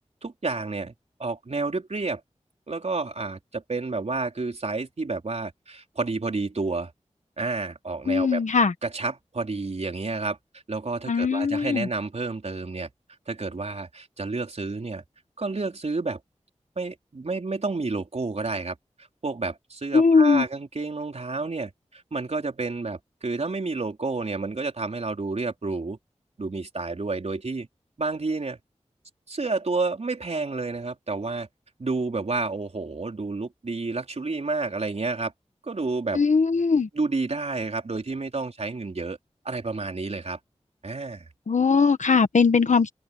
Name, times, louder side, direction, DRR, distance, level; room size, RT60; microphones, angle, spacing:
voice 1, 0.2-0.9 1.2-2.2 2.7-6.9 7.4-8.4 8.8-10.4 10.7-12.9 13.3-15.0 15.4-16.2 16.8-26.0 26.4-27.7 28.0-28.6 29.3-31.5 31.8-35.3 35.6-36.2 36.7-39.2 39.4-40.4 40.8-41.3, right 3 dB, 65° right, 4.4 m, -30 dB
voice 2, 8.1-8.7 11.1-11.9 19.9-20.5 36.1-36.9 41.5-42.9, left 5 dB, 85° left, 1.5 m, -20 dB
wide cardioid pair, 75°, 12 cm